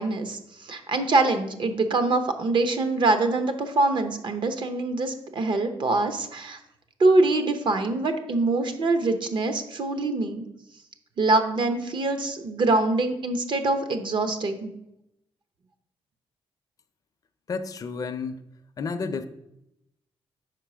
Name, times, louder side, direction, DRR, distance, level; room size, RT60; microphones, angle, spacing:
voice 1, 0.0-6.6 7.0-10.4 11.2-14.7, right 2 dB, 50° right, 8 dB, 0.7 m, -24 dB
voice 2, 17.5-18.4 18.8-19.2, left 4 dB, 35° left, 8 dB, 0.5 m, -31 dB
4.8 x 4.5 x 6.0 m, 0.83 s
cardioid pair, 105°, 10 cm